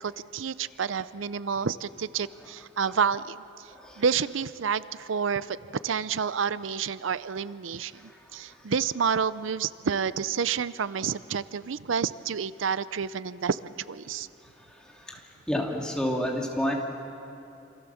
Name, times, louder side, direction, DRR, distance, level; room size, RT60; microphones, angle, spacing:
voice 1, 0.0-3.4 4.0-5.6 5.8-7.9 8.3-14.3, right 6 dB, 90° right, 16 dB, 0.6 m, -29 dB
voice 2, 3.7-4.0 14.8-15.2 15.5-16.7, equal, 5° left, -1 dB, 2.9 m, -29 dB
28.0 x 27.0 x 7.1 m, 2.7 s
head